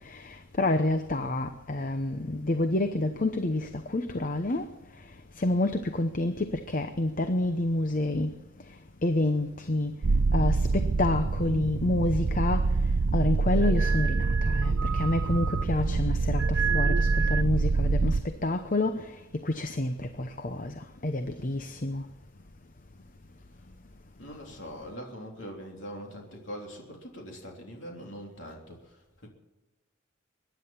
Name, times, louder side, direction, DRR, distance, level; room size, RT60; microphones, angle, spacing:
voice 1, 0.0-4.7 5.0-8.4 8.7-8.8 9.0-9.9 10.3-12.8 13.1-22.1, left 2 dB, 40° left, 0.8 m, -28 dB
sound 1, 10.0-18.2, right 3 dB, 75° right, 0.6 m, -25 dB
voice 2, 24.2-29.3, equal, 65° left, 3.4 m, -42 dB
23.0 x 10.5 x 5.7 m
head